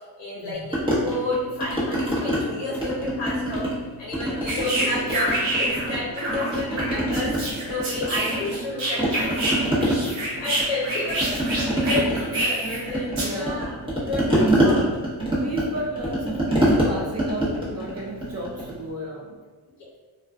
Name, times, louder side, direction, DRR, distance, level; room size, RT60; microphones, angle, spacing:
voice 1, 0.2-3.7 4.0-13.8 14.1-14.8, left 2 dB, 55° left, -5 dB, 0.8 m, -31 dB
sound 1, 0.7-2.4 2.7-3.8 4.1-6.0 6.3-8.7 9.0-18.8, right 1 dB, 10° right, 1.0 m, -25 dB
sound 2, 4.5-5.9 6.2-9.5 9.8-12.8 13.2-13.4, right 1 dB, 75° right, 0.9 m, -27 dB
voice 2, 6.4-6.8 7.7-7.8 9.7-10.2 13.2-13.6 14.3-14.6 15.3-19.4, right 1 dB, 35° right, -4 dB, 0.5 m, -35 dB
2.4 x 2.3 x 2.2 m, 1.4 s
cardioid pair, 50°, 49 cm